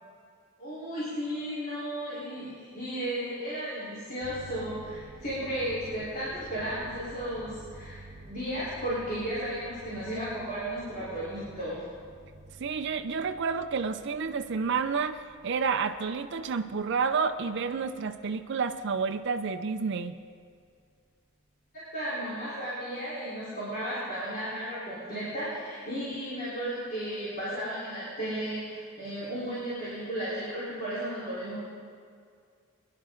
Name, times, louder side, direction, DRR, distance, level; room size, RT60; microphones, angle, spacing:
voice 1, 0.6-8.0 8.3-11.8 21.7-31.6, equal, 40° left, -11 dB, 4.1 m, -34 dB
sound 1, 4.2-20.2, right 2 dB, 35° right, 1.1 m, -51 dB
voice 2, 12.6-20.2, right 5 dB, 55° right, 7 dB, 0.5 m, -30 dB
23.5 x 11.0 x 3.8 m, 2.2 s
head